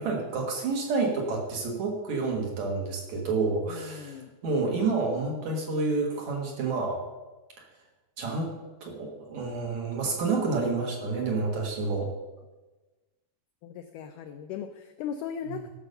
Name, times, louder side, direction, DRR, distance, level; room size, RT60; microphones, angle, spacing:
voice 1, 0.0-7.0 8.2-8.5 8.8-12.1 15.5-15.6, right 3 dB, 55° right, 0 dB, 2.6 m, -29 dB
voice 2, 3.7-4.3 13.6-15.7, left 8 dB, 85° left, 7 dB, 1.8 m, -38 dB
13.5 x 6.2 x 6.6 m, 1.2 s
omnidirectional pair, 4.4 m